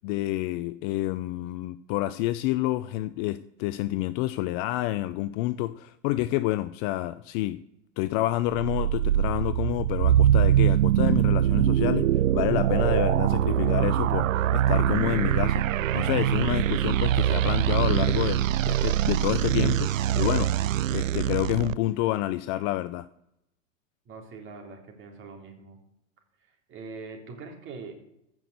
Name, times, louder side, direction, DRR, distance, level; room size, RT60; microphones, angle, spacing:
voice 1, 0.0-7.6 8.0-15.7 15.9-20.5 20.9-23.1, left 16 dB, 35° left, 0.4 m, -28 dB
sound 1, 8.5-21.7, right 11 dB, 80° right, 0.5 m, -23 dB
voice 2, 24.1-25.8 26.4-28.0, right 4 dB, 30° right, 3.6 m, -43 dB
14.5 x 6.1 x 8.0 m
hypercardioid pair, 110°, 38 cm